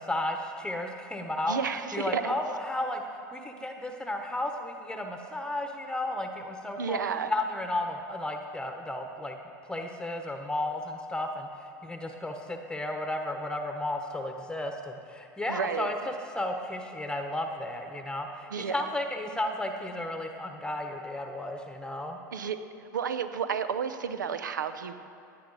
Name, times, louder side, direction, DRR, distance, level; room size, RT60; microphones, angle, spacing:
voice 1, 0.0-1.6 1.9-7.0 7.3-9.4 9.7-16.0 16.3-22.2, left 1 dB, 10° left, 4 dB, 1.0 m, -33 dB
voice 2, 1.5-2.3 6.8-7.3 15.5-15.9 18.5-18.8 22.3-22.6 22.9-24.9, right 7 dB, 85° right, 11 dB, 0.6 m, -31 dB
16.5 x 10.0 x 4.0 m, 2.7 s
hypercardioid pair, 85°, 10 cm